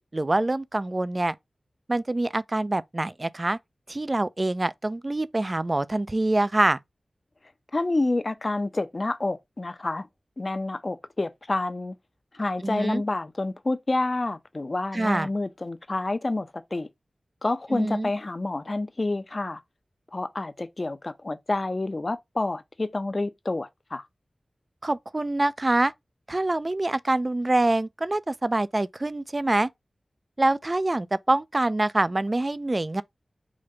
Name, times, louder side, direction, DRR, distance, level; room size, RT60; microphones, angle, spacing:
voice 1, 0.0-1.4 1.9-3.6 3.9-6.8 12.6-13.0 14.9-15.3 17.7-18.1 24.8-25.9 26.3-29.7 30.4-33.0, right 2 dB, 35° right, 0.3 m, -25 dB
voice 2, 7.7-10.1 10.4-12.0 12.3-16.9 17.4-19.6 20.1-24.0, left 2 dB, 45° left, 0.6 m, -28 dB
5.0 x 2.2 x 3.8 m
wide cardioid pair, 60°, 0 cm